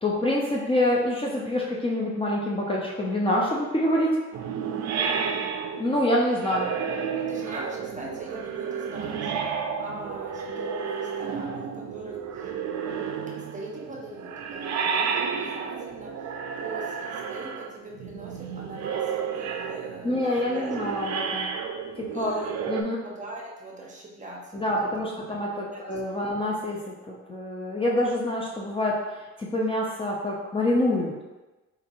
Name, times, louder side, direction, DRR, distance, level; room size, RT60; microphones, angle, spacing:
voice 1, 0.0-4.2 5.8-6.7 20.0-21.5 22.0-22.4 22.7-23.0 24.5-31.1, left 1 dB, 20° left, -4 dB, 0.5 m, -26 dB
sound 1, 4.3-22.8, right 6 dB, 65° right, 0.4 m, -32 dB
voice 2, 5.0-5.4 7.2-9.3 9.8-12.5 13.3-20.7 22.1-22.5 23.0-25.1 25.7-26.3, right 2 dB, 25° right, -1 dB, 0.7 m, -41 dB
4.0 x 2.6 x 2.6 m, 1.1 s
cardioid pair, 90°, 30 cm